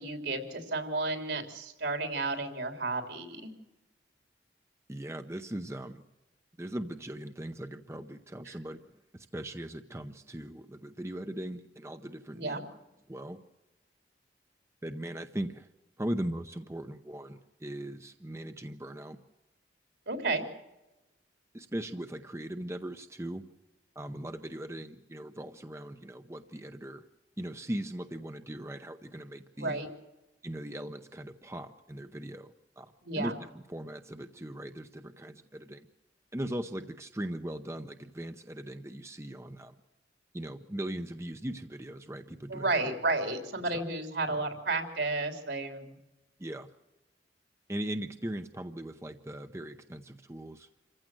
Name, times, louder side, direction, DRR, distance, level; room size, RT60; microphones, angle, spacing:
voice 1, 0.0-3.5 8.4-8.6 12.4-12.6 20.1-20.4 29.6-29.9 33.0-33.4 42.5-46.0, right 3 dB, 70° right, 6 dB, 3.3 m, -32 dB
voice 2, 4.9-6.0 6.6-12.6 13.1-13.4 14.8-15.7 16.0-19.2 21.5-23.5 24.0-27.0 27.4-29.8 30.4-35.9 36.3-39.8 40.3-42.9 43.7-43.8 44.3-44.4 46.4-46.7 47.7-50.7, right 1 dB, 15° right, 8 dB, 0.7 m, -39 dB
27.5 x 15.5 x 7.6 m, 1.1 s
head